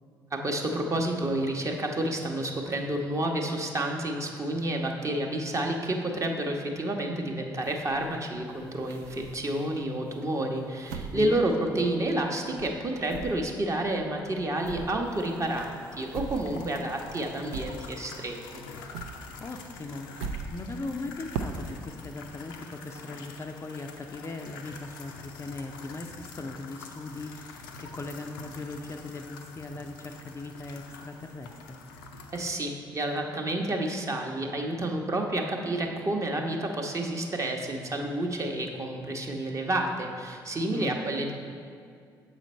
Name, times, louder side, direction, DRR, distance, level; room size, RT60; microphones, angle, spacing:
voice 1, 0.3-18.6 32.3-41.3, right 1 dB, 30° right, 2 dB, 0.9 m, -30 dB
sound 1, 7.6-9.8 10.2-12.3 12.6-18.3 18.5-21.9, right 4 dB, 65° right, 0.4 m, -41 dB
voice 2, 11.1-11.8 19.4-31.8 40.7-41.0, left 2 dB, 25° left, 4 dB, 0.5 m, -39 dB
sound 2, 15.0-32.5, left 4 dB, 70° left, 0.5 m, -46 dB
7.4 x 5.0 x 4.2 m, 2.2 s
figure-of-eight pair, 45°, 11 cm